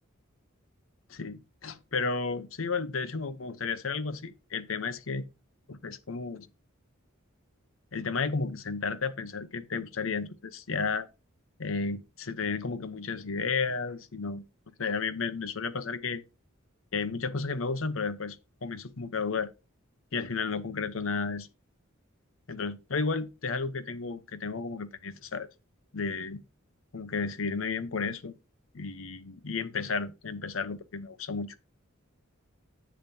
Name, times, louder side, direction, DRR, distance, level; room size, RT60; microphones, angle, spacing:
voice 1, 1.1-5.2 5.7-6.5 7.9-11.1 11.6-14.4 14.8-16.2 16.9-19.5 20.1-21.5 22.5-25.5 25.9-26.4 26.9-28.3 28.7-31.5, left 4 dB, 70° left, 0.9 m, -33 dB
10.5 x 7.3 x 2.8 m
head